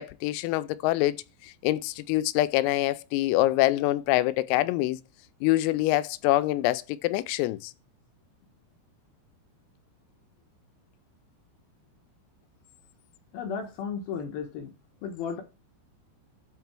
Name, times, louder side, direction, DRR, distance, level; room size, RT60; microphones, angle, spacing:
voice 1, 0.0-5.0 5.4-7.7, left 16 dB, 85° left, 3.3 m, -25 dB
voice 2, 13.3-14.7 15.0-15.4, left 6 dB, 70° left, 2.3 m, -34 dB
12.0 x 4.6 x 4.5 m
omnidirectional pair, 5.9 m